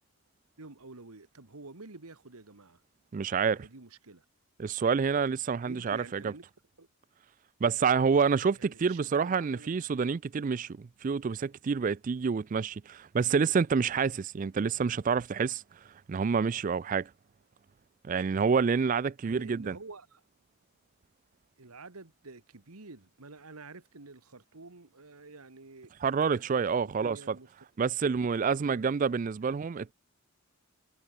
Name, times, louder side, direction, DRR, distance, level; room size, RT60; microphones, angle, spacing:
voice 1, 0.6-2.8 3.5-4.2 5.6-6.4 6.8-6.9 8.5-10.1 19.2-20.2 21.6-25.9 26.2-27.5 28.2-28.8, right 3 dB, 85° right, 1.7 m, -49 dB
voice 2, 3.1-3.6 4.6-6.3 7.6-15.6 16.1-17.1 18.0-19.8 26.0-27.4 27.8-29.9, right 5 dB, 35° right, 0.3 m, -28 dB
head